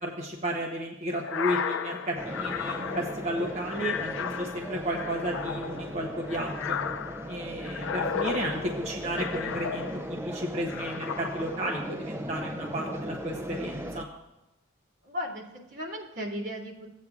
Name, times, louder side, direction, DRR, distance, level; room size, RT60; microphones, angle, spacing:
voice 1, 0.0-6.8 7.3-14.0, equal, 35° right, -1 dB, 0.8 m, -33 dB
sound 1, 1.2-10.3 10.7-11.7, left 7 dB, 75° left, 0.4 m, -34 dB
sound 2, 2.1-14.0, equal, 10° right, 0.3 m, -38 dB
voice 2, 15.0-16.9, equal, 75° right, -7 dB, 2.4 m, -36 dB
15.5 x 8.3 x 2.4 m, 0.97 s
head